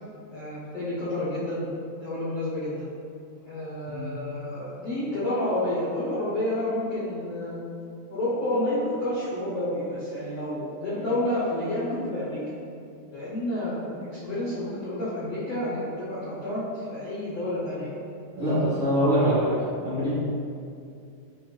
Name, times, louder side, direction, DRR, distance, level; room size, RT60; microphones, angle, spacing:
voice 1, 0.3-1.7 2.0-2.9 3.4-7.6 8.1-12.4 13.1-17.9 18.4-18.7, left 1 dB, 75° left, -11 dB, 1.5 m, -30 dB
voice 2, 3.9-4.3 18.4-19.5 19.8-20.2, equal, 60° right, -15 dB, 1.3 m, -24 dB
6.7 x 2.5 x 3.2 m, 2.4 s
omnidirectional pair, 4.1 m